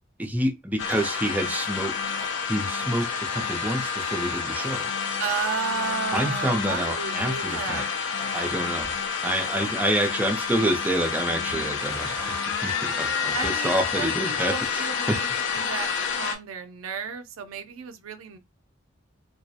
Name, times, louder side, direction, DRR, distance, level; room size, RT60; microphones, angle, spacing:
voice 1, 0.2-1.9 2.5-4.9 6.1-7.9 8.3-8.9 9.2-15.2, right 1 dB, 10° right, 0.4 m, -28 dB
sound 1, 0.8-16.4, left 6 dB, 60° left, 0.4 m, -29 dB
sound 2, 1.0-1.1 2.2-2.3 4.6-4.8 5.8-6.0 8.2-8.5 9.4-9.7 11.8-12.4 13.0-13.6, right 1 dB, 25° left, 1.0 m, -41 dB
voice 2, 5.2-7.9 13.3-18.4, right 6 dB, 80° right, 0.4 m, -33 dB
2.2 x 2.0 x 2.7 m
head